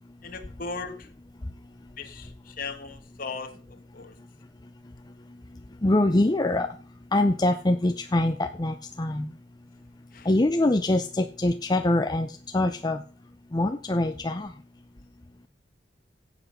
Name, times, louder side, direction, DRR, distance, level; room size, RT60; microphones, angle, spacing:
voice 1, 0.2-1.1 2.0-3.6 3.9-4.2 10.1-10.3, left 4 dB, 50° left, 5 dB, 1.4 m, -37 dB
voice 2, 5.8-6.7 7.1-9.3 10.3-12.3 12.5-13.0 13.5-14.5, left 1 dB, 20° left, 7 dB, 0.6 m, -24 dB
14.5 x 8.1 x 5.5 m, 0.39 s
head